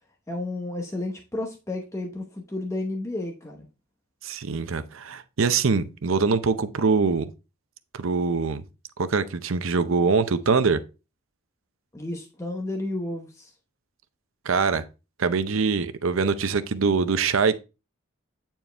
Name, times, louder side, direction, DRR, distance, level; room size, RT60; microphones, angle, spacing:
voice 1, 0.3-3.7 11.9-13.5, left 2 dB, 15° left, 0.8 m, -32 dB
voice 2, 4.2-7.3 7.9-8.6 9.0-10.8 14.5-14.8 15.2-17.6, right 4 dB, 75° right, 0.6 m, -23 dB
8.8 x 4.5 x 3.3 m
head